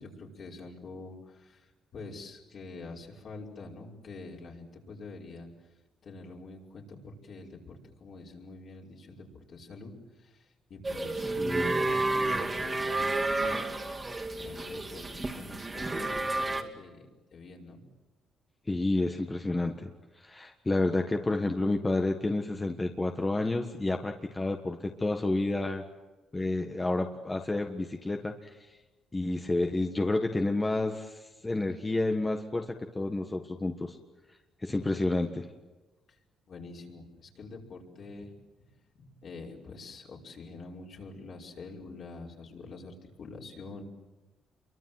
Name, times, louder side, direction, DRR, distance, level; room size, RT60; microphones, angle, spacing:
voice 1, 0.0-5.5 6.0-13.6 14.3-17.0 17.3-17.8 36.1-36.2 36.5-38.3 38.9-43.8, left 3 dB, 55° left, -2 dB, 5.6 m, -46 dB
sound 1, 10.8-16.6, right 2 dB, 25° right, 2.5 m, -31 dB
voice 2, 11.4-11.8 18.7-19.9 20.2-25.8 26.3-28.6 29.1-34.0 34.6-35.5, left 2 dB, 20° left, 4 dB, 1.5 m, -30 dB
28.0 x 23.5 x 7.8 m, 1.2 s
cardioid pair, 90°, 0 cm